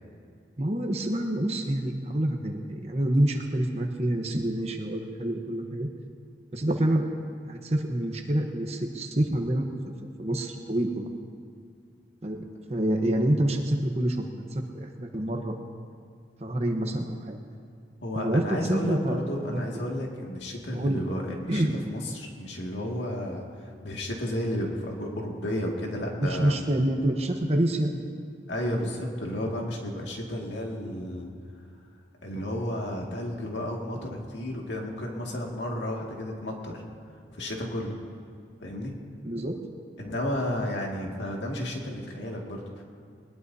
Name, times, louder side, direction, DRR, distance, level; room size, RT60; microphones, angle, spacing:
voice 1, 0.6-5.9 6.5-7.0 7.4-9.7 10.2-11.1 12.2-15.5 16.4-17.4 18.1-19.2 19.4-19.6 20.7-21.0 21.5-21.8 26.2-28.0 39.2-39.6, right 1 dB, 35° right, 3 dB, 1.0 m, -27 dB
voice 2, 18.0-26.6 28.5-31.3 32.2-36.8 37.3-38.0 38.6-38.9 40.0-42.8, left 1 dB, 90° left, -1 dB, 2.1 m, -32 dB
20.5 x 20.5 x 2.8 m, 2.3 s
head